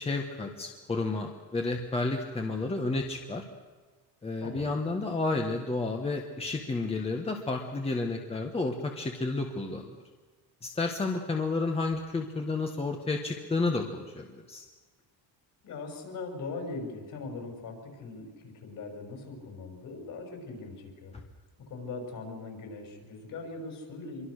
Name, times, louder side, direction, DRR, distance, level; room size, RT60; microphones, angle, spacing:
voice 1, 0.0-3.4 4.2-9.9 10.6-14.6, left 3 dB, 15° left, 3 dB, 1.4 m, -31 dB
voice 2, 4.4-4.8 15.6-21.1 21.7-24.3, left 3 dB, 50° left, 3 dB, 6.4 m, -40 dB
25.5 x 24.0 x 6.5 m, 1.3 s
cardioid pair, 160°, 41 cm